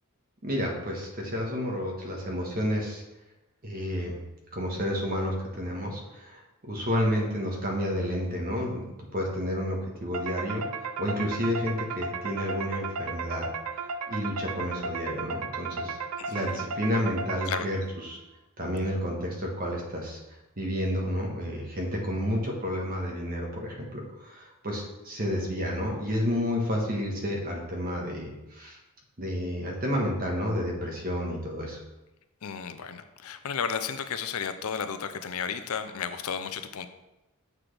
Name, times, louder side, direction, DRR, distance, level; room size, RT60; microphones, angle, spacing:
voice 1, 0.4-3.0 3.6-4.2 4.5-8.8 9.1-10.6 11.0-13.5 14.1-16.0 16.3-18.2 18.6-20.2 20.6-28.8 29.2-31.8, equal, 40° right, -1 dB, 1.4 m, -30 dB
sound 1, 10.1-18.0, right 4 dB, 85° right, 0.5 m, -35 dB
voice 2, 16.2-16.6 17.5-17.7 32.4-36.9, left 7 dB, 75° left, 10 dB, 0.5 m, -33 dB
7.4 x 6.0 x 3.3 m, 0.99 s
head